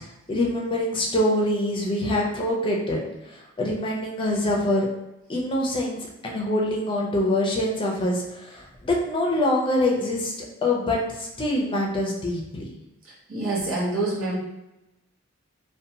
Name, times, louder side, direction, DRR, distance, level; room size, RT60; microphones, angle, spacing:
voice 1, 0.3-4.9 5.3-10.3 10.6-12.7, left 1 dB, 25° left, -1 dB, 0.5 m, -25 dB
voice 2, 13.0-14.4, right 2 dB, 75° right, -5 dB, 0.8 m, -27 dB
2.7 x 2.2 x 2.7 m, 0.93 s
head